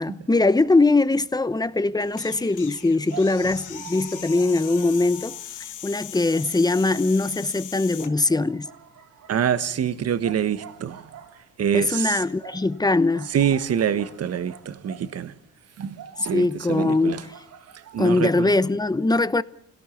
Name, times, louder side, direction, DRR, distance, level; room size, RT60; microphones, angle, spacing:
voice 1, 0.0-8.7 11.7-13.3 16.3-17.3 18.0-19.4, left 2 dB, 15° left, 0.9 m, -21 dB
sound 1, 2.0-8.1, left 11 dB, 80° left, 1.4 m, -39 dB
sound 2, 3.1-5.9 6.3-7.6 8.0-15.4 15.9-18.6, right 9 dB, 75° right, 3.9 m, -46 dB
voice 2, 9.3-11.0 11.6-12.2 13.3-15.3 15.8-17.2 17.9-18.5, right 8 dB, 55° right, 1.5 m, -25 dB
28.0 x 17.5 x 7.2 m
cardioid pair, 90°, 30 cm